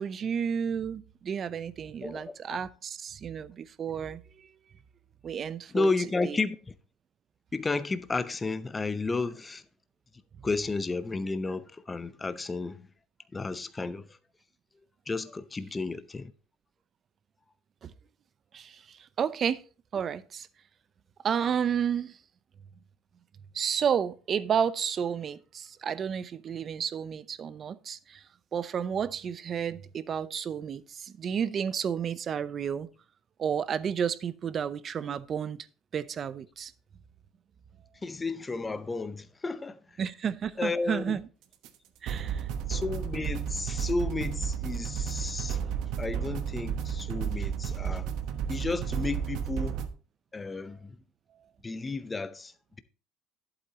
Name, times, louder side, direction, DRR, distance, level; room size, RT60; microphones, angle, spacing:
voice 1, 0.0-4.5 5.2-5.9 6.2-6.4 17.8-17.9 18.5-19.6 19.9-20.5 21.2-22.2 23.5-28.3 28.5-32.9 33.4-35.7 35.9-36.7 40.0-41.2 42.0-42.5, right 7 dB, 35° right, 0.6 m, -31 dB
voice 2, 2.0-2.6 5.7-6.7 7.5-9.6 10.4-12.9 13.3-14.2 15.1-16.3 38.0-39.8 40.6-41.2 42.7-45.6 46.0-48.1 48.5-49.8 50.3-51.0 51.6-52.5, left 3 dB, 15° left, 0.6 m, -32 dB
sound 1, 41.6-41.7 42.1-49.9, right 8 dB, 65° right, 1.1 m, -32 dB
11.0 x 8.1 x 2.9 m
supercardioid pair, 115°, 0 cm